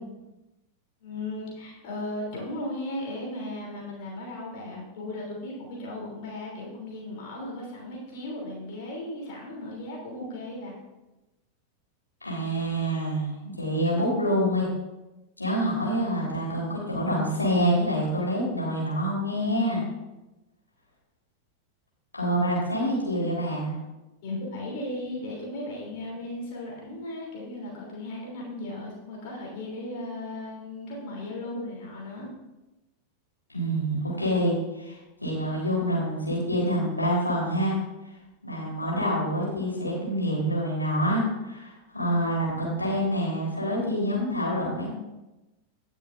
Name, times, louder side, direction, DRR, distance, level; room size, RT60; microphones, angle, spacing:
voice 1, 1.0-10.8 24.2-32.3, left 1 dB, 50° left, -3 dB, 3.3 m, -36 dB
voice 2, 12.2-14.7 15.4-19.8 22.1-23.7 33.5-34.9 35.2-37.8 38.4-45.0, equal, 85° left, -4 dB, 3.7 m, -26 dB
18.0 x 6.2 x 2.6 m, 1.0 s
figure-of-eight pair, 90°, 0 cm